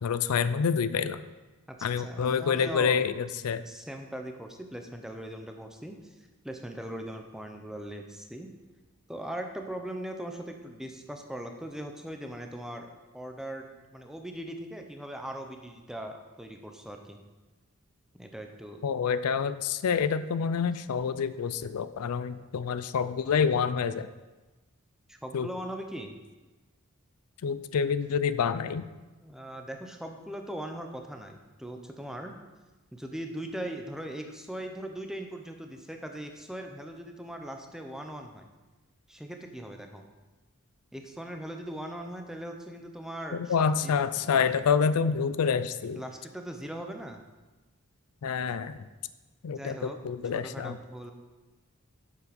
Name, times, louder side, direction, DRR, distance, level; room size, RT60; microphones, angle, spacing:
voice 1, 0.0-1.2 1.8-3.6 18.8-24.1 25.3-25.5 27.4-28.8 43.3-46.0 48.2-48.8 49.4-50.8, left 6 dB, 85° left, 13 dB, 0.4 m, -27 dB
voice 2, 1.7-3.0 3.6-8.5 9.1-13.7 13.9-17.2 18.1-18.8 25.1-26.2 29.2-32.3 32.9-38.5 39.1-40.0 40.9-43.5 43.8-43.9 45.9-47.2 49.5-50.0 50.3-51.1, right 1 dB, ahead, 4 dB, 0.7 m, -40 dB
8.1 x 7.5 x 5.2 m, 1.2 s
head